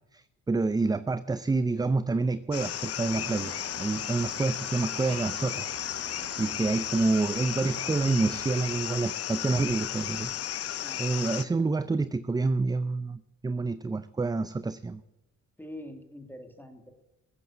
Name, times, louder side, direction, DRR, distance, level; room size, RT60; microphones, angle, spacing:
voice 1, 0.1-5.7 6.1-10.3 11.0-15.0, right 3 dB, 15° right, 14 dB, 0.4 m, -28 dB
sound 1, 2.5-11.4, left 11 dB, 50° left, 0.6 m, -34 dB
sound 2, 3.0-8.9, right 8 dB, 75° right, 1.4 m, -46 dB
voice 2, 10.8-11.2 15.6-16.9, left 1 dB, 5° left, 6 dB, 2.3 m, -44 dB
15.0 x 7.8 x 8.5 m, 1.0 s
cardioid pair, 75°, 30 cm